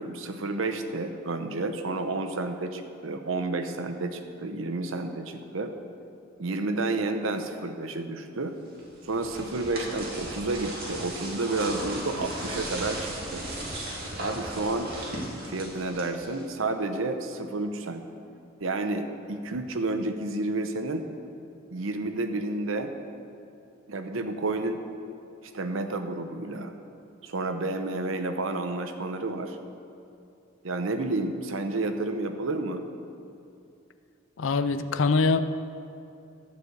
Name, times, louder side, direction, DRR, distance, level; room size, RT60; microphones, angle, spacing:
voice 1, 0.0-5.7 6.4-8.5 9.0-13.4 14.2-14.9 15.5-18.0 18.6-21.1 21.7-22.9 23.9-24.8 25.4-26.7 27.2-29.6 30.6-32.9, right 2 dB, 80° right, 7 dB, 0.8 m, -30 dB
sound 1, 8.8-16.6, right 1 dB, 50° right, 2.3 m, -36 dB
voice 2, 34.4-35.4, left 4 dB, 70° left, 10 dB, 0.5 m, -23 dB
11.5 x 4.9 x 7.9 m, 2.6 s
head